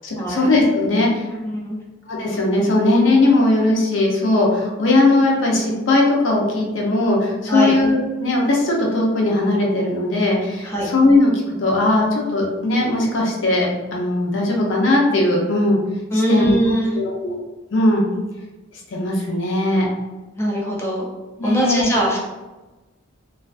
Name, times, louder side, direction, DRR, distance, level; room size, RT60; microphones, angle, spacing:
voice 1, 0.0-1.3 2.1-11.3 11.6-15.8 16.1-16.5 17.0-17.4 17.7-18.1 18.9-19.9 21.4-21.9, left 2 dB, 65° left, -1 dB, 0.5 m, -18 dB
voice 2, 1.3-1.8 7.5-7.8 10.6-10.9 16.1-17.0 20.4-21.1 21.4-22.2, equal, 15° left, -3 dB, 0.3 m, -21 dB
2.3 x 2.3 x 2.4 m, 1.1 s
head